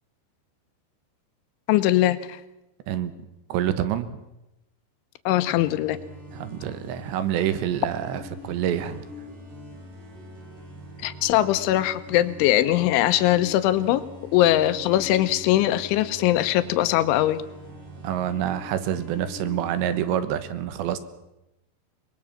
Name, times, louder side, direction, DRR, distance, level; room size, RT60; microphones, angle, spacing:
voice 1, 1.7-2.4 5.3-6.0 11.0-14.0 14.3-17.4, left 14 dB, 90° left, 12 dB, 3.4 m, -21 dB
voice 2, 3.5-4.2 6.3-9.0 18.0-21.0, right 10 dB, 75° right, 12 dB, 3.3 m, -27 dB
sound 1, 5.5-20.1, left 2 dB, 45° right, 8.6 m, -43 dB
23.5 x 21.0 x 7.3 m, 0.92 s
omnidirectional pair, 5.4 m